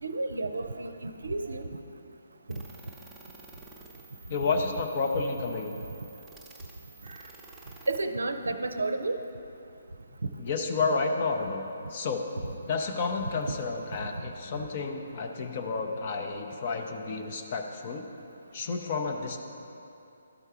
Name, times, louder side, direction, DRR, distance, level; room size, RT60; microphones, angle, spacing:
voice 1, 0.0-1.7 2.5-2.6 4.6-4.7 7.1-7.2 7.9-9.2 12.4-12.5 13.3-13.5 14.0-14.1, right 2 dB, 70° right, 9 dB, 0.5 m, -32 dB
sound 1, 2.5-8.0, right 3 dB, 5° right, 0.8 m, -52 dB
voice 2, 4.3-5.8 10.4-11.6 11.9-12.3 12.7-18.1 18.5-19.4, left 4 dB, 35° left, 3 dB, 0.7 m, -30 dB
12.0 x 4.5 x 4.8 m, 2.8 s
figure-of-eight pair, 135°, 0 cm